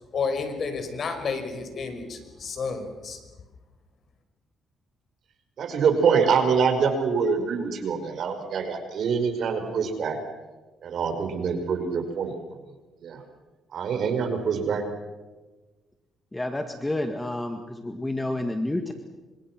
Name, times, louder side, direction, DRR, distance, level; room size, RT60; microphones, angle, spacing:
voice 1, 0.1-3.2, left 4 dB, 55° left, 7 dB, 5.6 m, -31 dB
voice 2, 5.6-10.2 10.8-12.3 13.0-13.2 13.7-14.8, right 6 dB, 65° right, 7 dB, 5.3 m, -25 dB
voice 3, 16.3-18.9, left 1 dB, 15° left, 6 dB, 2.0 m, -29 dB
29.5 x 25.5 x 6.2 m, 1.2 s
cardioid pair, 90°, 0 cm